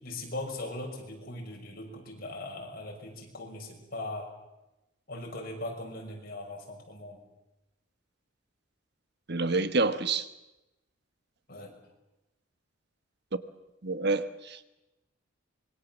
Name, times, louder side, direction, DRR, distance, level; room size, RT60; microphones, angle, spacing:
voice 1, 0.0-4.3 5.1-7.2 11.5-11.7, left 2 dB, 50° left, 6.4 m, -39 dB
voice 2, 9.3-10.3 13.8-14.6, right 3 dB, 55° right, 1.3 m, -28 dB
26.0 x 22.5 x 7.4 m
head